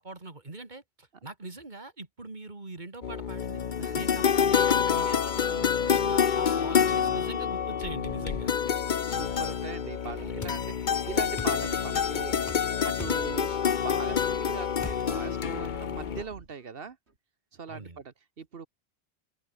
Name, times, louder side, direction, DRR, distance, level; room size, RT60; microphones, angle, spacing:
voice 1, 0.0-3.6 3.9-8.5 17.7-18.0, right 2 dB, 45° right, 2.8 m, -42 dB
sound 1, 3.0-16.2, left 7 dB, 50° left, 0.9 m, -27 dB
voice 2, 6.5-7.2 8.2-8.4 9.0-12.4 12.6-17.0 17.5-18.7, right 5 dB, 60° right, 1.4 m, -41 dB
sound 2, 9.2-10.6 11.1-12.7 13.1-14.6 15.1-16.7 17.1-17.2, right 3 dB, 80° right, 3.2 m, -50 dB
sound 3, 10.4-10.6 11.4-11.6 12.5-12.6 13.0-13.2 14.8-15.0, left 4 dB, 30° left, 0.3 m, -39 dB
open air
omnidirectional pair, 1.1 m